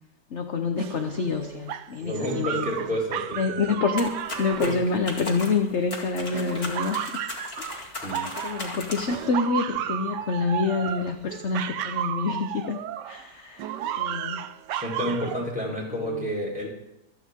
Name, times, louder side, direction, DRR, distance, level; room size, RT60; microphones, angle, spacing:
voice 1, 0.3-2.7 3.3-4.1 4.4-7.0 7.6-8.0 8.4-12.8 13.0-13.7 14.0-14.5 15.0-15.1 15.9-16.3, left 4 dB, 45° left, 5 dB, 1.0 m, -27 dB
sound 1, 0.8-5.8 6.3-8.8 9.1-13.2 13.6-15.4, right 10 dB, 70° right, 1.2 m, -33 dB
voice 2, 2.0-3.7 4.6-4.7 5.1-5.2 8.0-8.5 14.7-16.7, equal, 5° right, -3 dB, 4.1 m, -30 dB
sound 2, 4.0-9.3, left 2 dB, 30° left, 2.4 m, -37 dB
26.0 x 9.4 x 3.7 m, 0.88 s
omnidirectional pair, 2.0 m